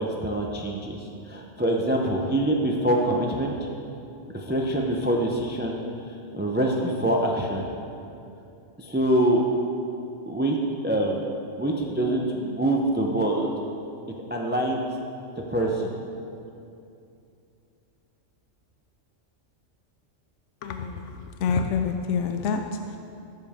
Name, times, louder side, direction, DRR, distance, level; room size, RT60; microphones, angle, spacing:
voice 1, 0.0-3.7 4.3-7.6 8.8-9.4 10.3-10.6 10.8-11.3 11.6-13.5 14.3-14.9 15.5-15.9, right 1 dB, 10° right, 0 dB, 0.6 m, -25 dB
voice 2, 20.6-23.0, left 5 dB, 75° left, 6 dB, 0.9 m, -27 dB
18.5 x 7.5 x 3.6 m, 2.6 s
omnidirectional pair, 1.3 m